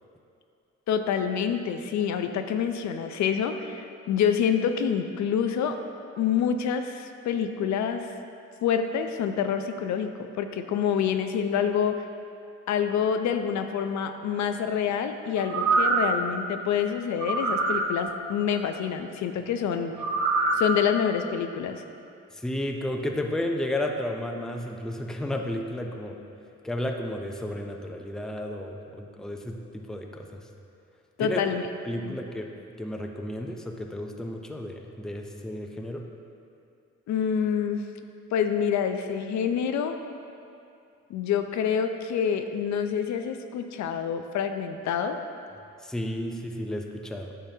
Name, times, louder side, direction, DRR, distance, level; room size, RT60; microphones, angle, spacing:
voice 1, 0.9-5.8 6.2-8.1 8.6-12.1 12.7-20.0 20.5-21.8 31.2-31.6 32.0-32.2 37.1-37.8 38.3-40.0 41.1-45.2, left 7 dB, 70° left, 7 dB, 0.5 m, -27 dB
sound 1, 15.4-16.2 17.2-17.9 20.0-20.7 21.1-21.2, right 3 dB, 70° right, 0.7 m, -24 dB
voice 2, 22.3-26.2 26.6-30.4 31.2-31.4 31.8-32.5 32.8-36.0 45.8-47.3, left 1 dB, ahead, 2 dB, 0.5 m, -32 dB
10.0 x 5.7 x 2.7 m, 2.6 s
cardioid pair, 90°, 30 cm